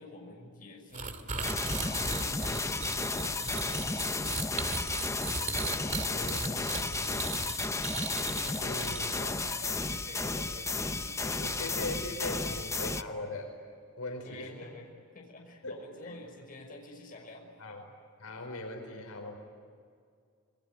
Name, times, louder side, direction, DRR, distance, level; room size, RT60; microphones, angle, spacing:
voice 1, 0.0-4.8 5.4-7.3 8.2-12.6 14.2-14.9 15.1-17.5, left 2 dB, 40° left, 1 dB, 6.1 m, -48 dB
sound 1, 0.9-9.4, right 4 dB, 35° right, 2.1 m, -37 dB
sound 2, 1.4-13.0, left 3 dB, 15° left, 0.7 m, -33 dB
voice 2, 6.1-6.9 8.6-9.4 11.4-13.6 14.0-14.7 15.6-16.2 17.6-17.8 18.2-19.4, left 2 dB, 80° left, 4 dB, 5.0 m, -40 dB
27.5 x 22.5 x 9.5 m, 2.2 s
head